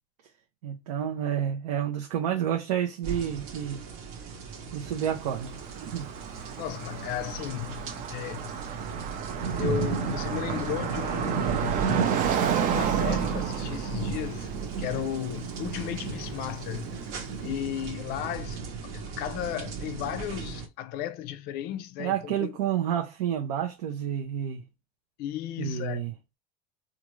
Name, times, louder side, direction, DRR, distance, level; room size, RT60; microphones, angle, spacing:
voice 1, 0.6-3.8 4.7-6.1 22.0-24.6 25.6-26.1, right 9 dB, 85° right, 0.6 m, -30 dB
sound 1, 3.0-20.7, right 5 dB, 65° right, 1.0 m, -34 dB
Car passing by, 5.1-17.1, right 8 dB, 40° right, 0.6 m, -32 dB
voice 2, 6.6-8.7 9.3-12.0 12.6-14.5 14.8-17.1 17.4-22.5 25.2-26.0, left 11 dB, 55° left, 0.5 m, -35 dB
3.7 x 2.5 x 3.0 m
supercardioid pair, 115°, 20 cm